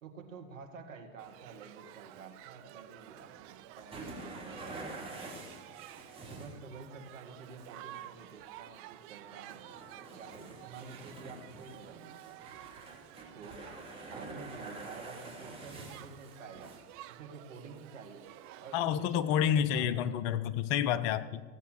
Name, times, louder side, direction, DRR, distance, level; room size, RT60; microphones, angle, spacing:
voice 1, 0.0-5.2 6.3-9.6 10.2-12.4 13.3-13.7 14.1-16.8 17.1-18.3 18.6-20.2, right 5 dB, 70° right, 4 dB, 2.0 m, -50 dB
Shout / Human group actions, 1.2-18.8, right 14 dB, 35° right, 0.6 m, -52 dB
sound 1, 3.5-6.7 7.5-8.3 8.8-8.9 9.2-16.8 17.6-17.7 18.3-18.5 19.7-19.8, right 2 dB, 15° right, 2.9 m, -47 dB
voice 2, 18.7-21.4, left 9 dB, 40° left, 13 dB, 0.7 m, -29 dB
15.5 x 7.8 x 6.7 m, 1.4 s
figure-of-eight pair, 90°, 40 cm